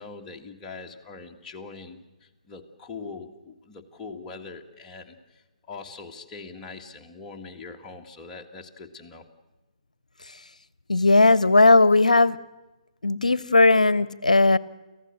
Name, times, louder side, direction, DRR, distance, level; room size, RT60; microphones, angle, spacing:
voice 1, 0.0-9.2, left 4 dB, 20° left, 1 dB, 1.9 m, -42 dB
voice 2, 10.9-12.4 13.0-14.6, left 2 dB, 85° left, 20 dB, 0.8 m, -17 dB
29.5 x 15.0 x 6.5 m, 1.1 s
figure-of-eight pair, 130°, 4 cm